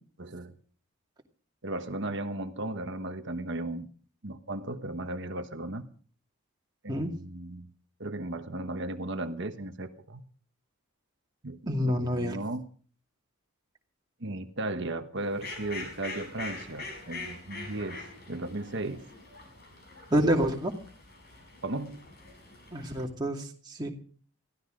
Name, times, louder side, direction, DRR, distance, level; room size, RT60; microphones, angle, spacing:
voice 1, 0.2-0.5 1.6-3.9 4.2-5.8 6.8-7.7 8.0-10.2 11.4-12.7 14.2-19.0 21.6-22.0, right 2 dB, 55° right, 7 dB, 1.3 m, -36 dB
voice 2, 11.7-12.4 20.1-20.7 22.7-23.9, equal, 20° right, 0 dB, 2.4 m, -28 dB
Fowl, 15.2-23.0, left 3 dB, 45° left, 6.5 m, -44 dB
22.5 x 15.0 x 3.9 m, 0.44 s
head